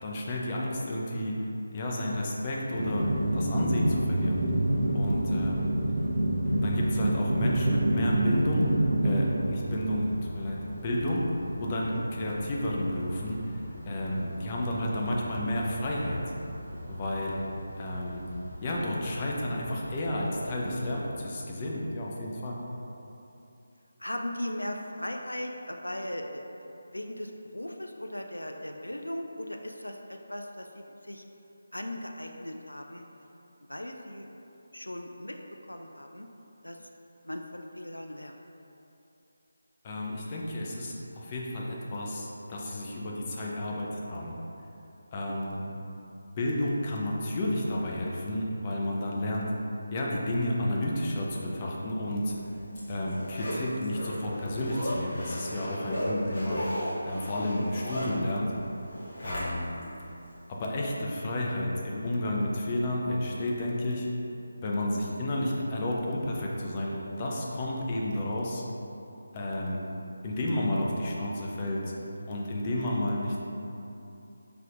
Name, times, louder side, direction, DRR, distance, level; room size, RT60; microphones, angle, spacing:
voice 1, 0.0-4.4 4.9-5.7 6.6-8.7 9.0-11.3 11.6-16.2 16.9-17.4 17.8-18.2 18.6-22.6 39.8-44.4 45.1-45.6 46.3-49.5 49.9-52.4 52.9-56.7 57.0-58.5 59.2-59.8 60.5-64.1 64.6-68.6 69.3-69.8 70.2-72.0 72.3-73.4, left 1 dB, 25° left, -3 dB, 0.5 m, -31 dB
sound 1, 2.7-21.1, right 1 dB, 40° right, 0.8 m, -30 dB
voice 2, 24.0-31.2 31.7-33.1 33.7-34.3 34.7-35.4 35.7-36.3 36.6-36.8 37.2-38.3 59.4-59.6, left 1 dB, 85° left, 3 dB, 0.3 m, -38 dB
Zipper (clothing), 52.3-59.9 60.3-60.4, equal, 40° left, 1.2 m, -36 dB
5.6 x 3.4 x 2.5 m, 2.8 s
figure-of-eight pair, 160°, 0 cm